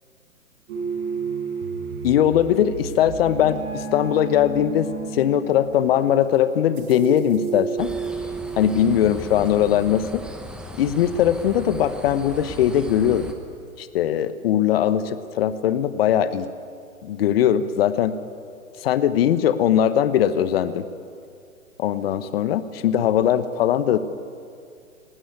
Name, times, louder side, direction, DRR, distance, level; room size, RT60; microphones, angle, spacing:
sound 1, 0.7-9.8, right 6 dB, 45° right, 4.7 m, -32 dB
voice 1, 2.0-7.9 8.6-10.2 10.8-13.3 13.8-16.5 17.0-18.1 18.8-20.8 21.8-24.0, left 10 dB, 45° left, 13 dB, 1.2 m, -20 dB
sound 2, 7.8-13.3, right 1 dB, ahead, 1.2 m, -38 dB
19.5 x 19.0 x 9.5 m, 2.3 s
hypercardioid pair, 135°, 43 cm